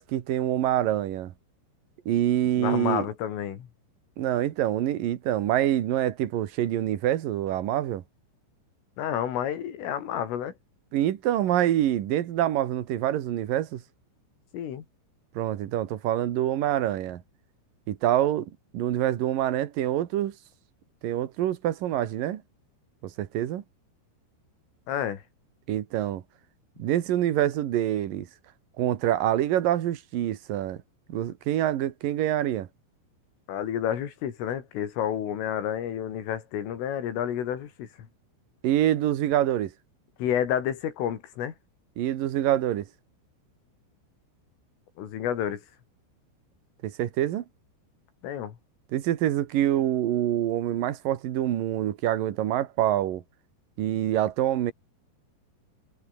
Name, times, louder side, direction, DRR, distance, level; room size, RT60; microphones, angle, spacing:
voice 1, 0.0-1.3 2.1-3.1 4.2-8.0 10.9-13.8 15.4-17.2 17.9-20.3 21.0-22.4 23.0-23.6 25.7-26.2 26.8-28.3 28.8-30.8 31.1-32.7 38.6-39.7 42.0-42.9 46.8-47.4 48.9-53.2 53.8-54.7, right 12 dB, 60° right, 2.6 m, -26 dB
voice 2, 2.6-3.7 9.0-10.5 14.5-14.9 24.9-25.2 33.5-38.1 40.2-41.5 45.0-45.6 48.2-48.6, left 9 dB, 85° left, 5.6 m, -30 dB
omnidirectional pair, 5.6 m